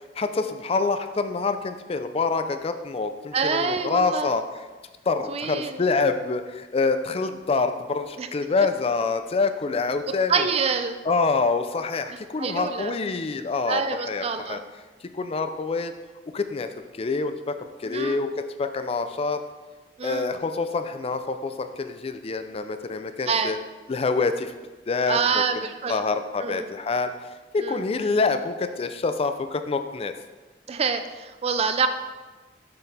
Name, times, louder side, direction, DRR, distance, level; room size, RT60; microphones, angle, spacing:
voice 1, 0.2-4.4 5.1-10.5 11.1-13.8 14.1-14.6 15.1-15.9 16.3-19.4 20.0-23.6 23.9-24.6 24.9-25.6 25.9-30.1, left 4 dB, 35° left, 9 dB, 0.4 m, -26 dB
voice 2, 3.3-4.3 5.3-5.8 8.2-8.3 10.3-11.0 12.4-12.9 13.7-14.6 17.8-18.2 20.0-20.3 23.3-23.5 25.1-26.0 26.4-26.7 27.6-27.8 30.7-31.9, right 5 dB, 35° right, 8 dB, 0.4 m, -26 dB
6.7 x 5.9 x 3.5 m, 1.3 s
head